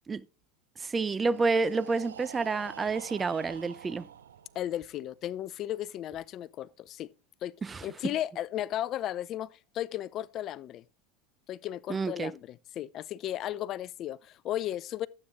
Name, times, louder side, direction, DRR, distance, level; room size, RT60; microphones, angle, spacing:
voice 1, 0.8-4.1 7.6-7.8 11.9-12.3, right 4 dB, 20° right, 0.6 m, -29 dB
Breathing, 1.0-4.9, right 8 dB, 85° right, 0.7 m, -47 dB
voice 2, 4.5-7.1 7.4-7.5 7.8-10.8 11.5-15.1, left 12 dB, 45° left, 0.5 m, -35 dB
12.5 x 8.5 x 3.6 m
hypercardioid pair, 90°, 0 cm